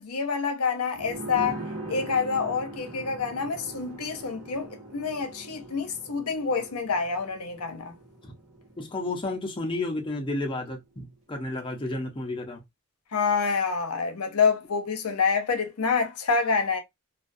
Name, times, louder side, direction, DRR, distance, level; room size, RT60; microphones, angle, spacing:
voice 1, 0.0-7.9 13.1-16.8, left 5 dB, 75° left, 0.6 m, -27 dB
sound 1, 0.9-10.2 10.5-10.6, right 2 dB, 65° right, 0.9 m, -41 dB
voice 2, 8.8-12.6, left 2 dB, 20° left, 0.6 m, -32 dB
2.3 x 2.2 x 2.5 m
head